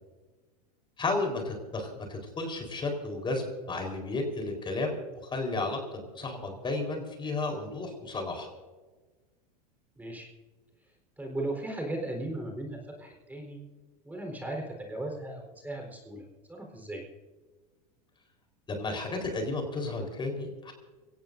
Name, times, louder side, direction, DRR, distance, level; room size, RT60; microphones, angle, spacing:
voice 1, 1.0-5.0 5.2-8.5 18.7-20.7, left 3 dB, 25° left, 3 dB, 4.2 m, -33 dB
voice 2, 10.0-10.3 11.2-13.6 14.0-16.2 16.5-17.0, right 1 dB, 10° right, 1 dB, 4.2 m, -37 dB
24.0 x 17.5 x 2.7 m, 1.3 s
hypercardioid pair, 105°, 21 cm